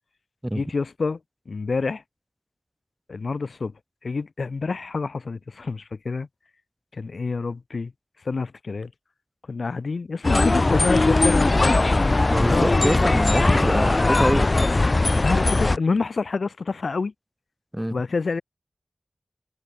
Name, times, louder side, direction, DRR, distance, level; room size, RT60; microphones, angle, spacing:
voice 1, 0.5-1.2 1.5-2.0 3.1-3.7 4.0-6.3 6.9-7.9 8.2-8.9 9.5-11.8 12.5-12.7 15.2-17.1 17.9-18.4, left 4 dB, 90° left, 2.9 m, -27 dB
sound 1, 10.2-15.8, left 2 dB, 50° left, 0.7 m, -19 dB
voice 2, 12.3-14.5 17.7-18.0, right 1 dB, 10° right, 0.6 m, -25 dB
wide cardioid pair, 50°, 0 cm